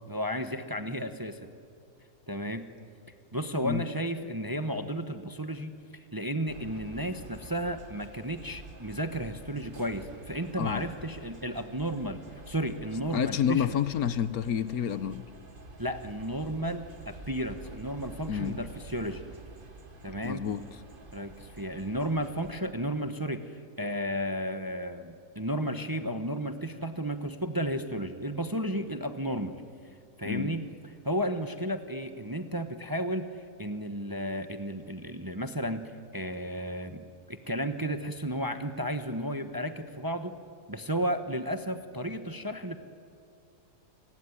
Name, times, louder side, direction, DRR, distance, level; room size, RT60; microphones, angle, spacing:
voice 1, 0.1-1.4 2.3-2.7 3.3-12.2 12.5-13.7 15.8-19.2 20.0-20.4 21.1-29.6 30.2-30.6 31.0-40.4 40.7-42.8, equal, 15° right, 8 dB, 0.9 m, -33 dB
sound 1, 6.5-22.6, right 2 dB, 35° right, 1.8 m, -49 dB
voice 2, 13.1-15.3 18.3-18.6 20.2-20.6 30.2-30.5, left 8 dB, 65° left, 15 dB, 1.3 m, -29 dB
29.0 x 19.5 x 9.8 m, 2.3 s
omnidirectional pair, 1.7 m